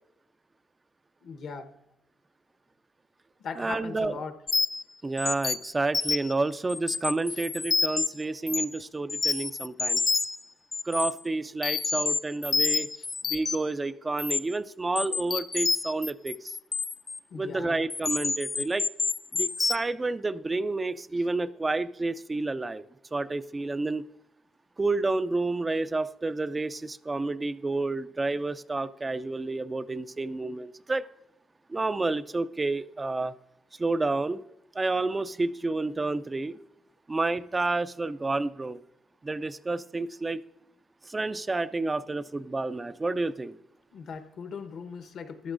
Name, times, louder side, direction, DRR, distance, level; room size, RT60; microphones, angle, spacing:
voice 1, 1.2-1.7 3.4-4.4 7.3-7.4 12.9-13.1 17.3-17.9 43.9-45.5, left 5 dB, 65° left, 7 dB, 1.0 m, -39 dB
voice 2, 3.6-4.2 5.0-10.0 10.8-12.9 13.3-16.6 17.3-18.8 19.3-24.0 24.8-31.0 31.7-33.3 33.8-34.4 34.7-36.6 37.1-38.8 39.2-40.4 41.0-43.6, right 3 dB, 25° right, 12 dB, 0.4 m, -30 dB
sound 1, 4.5-4.8 5.2-6.3 6.7-8.1 8.5-8.8 9.1-10.4 10.7-11.1 11.6-13.7 14.2-14.4 15.0-17.2 17.9-19.8, left 4 dB, 30° left, 0.6 m, -28 dB
15.0 x 11.5 x 2.5 m, 0.85 s
cardioid pair, 90°, 0 cm